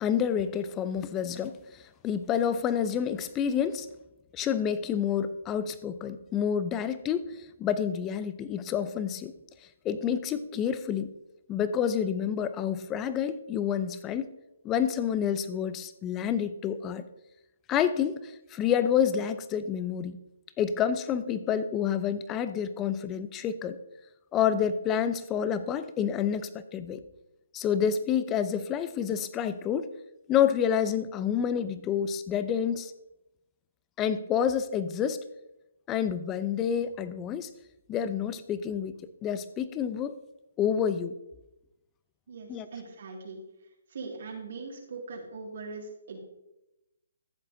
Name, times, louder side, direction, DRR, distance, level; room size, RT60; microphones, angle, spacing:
voice 1, 0.0-3.9 4.3-9.3 9.8-11.1 11.5-14.3 14.6-17.0 17.7-20.2 20.6-23.8 24.3-27.0 27.5-29.9 30.3-32.9 34.0-35.2 35.9-37.5 37.9-39.0 39.2-40.1 40.6-41.1 42.5-42.7, left 8 dB, 20° left, 13 dB, 0.5 m, -28 dB
voice 2, 42.3-43.4 43.9-46.2, right 4 dB, 60° right, -2 dB, 2.1 m, -41 dB
14.0 x 7.4 x 2.6 m, 0.93 s
hypercardioid pair, 150°, 0 cm